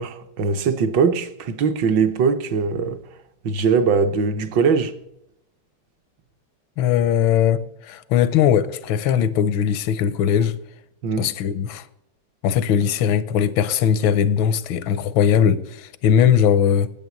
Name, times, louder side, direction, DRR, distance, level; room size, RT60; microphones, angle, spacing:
voice 1, 0.0-3.0 3.4-4.9 11.0-11.3, right 5 dB, 70° right, 1.5 m, -21 dB
voice 2, 6.8-10.6 11.2-11.9 12.4-16.9, left 8 dB, 85° left, 1.5 m, -19 dB
9.3 x 8.3 x 7.0 m
omnidirectional pair, 2.2 m